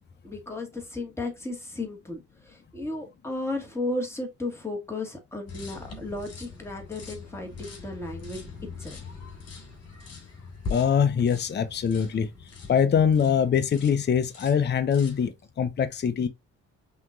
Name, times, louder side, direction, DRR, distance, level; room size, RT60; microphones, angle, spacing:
voice 1, 0.2-8.5 8.8-9.1, left 2 dB, 10° left, 2.1 m, -34 dB
sound 1, 5.5-13.4 13.7-14.0 14.3-15.3, left 4 dB, 55° left, 2.3 m, -42 dB
voice 2, 10.7-12.3 12.7-16.3, left 7 dB, 35° left, 0.7 m, -23 dB
5.7 x 3.0 x 2.6 m
cardioid pair, 90°, 30 cm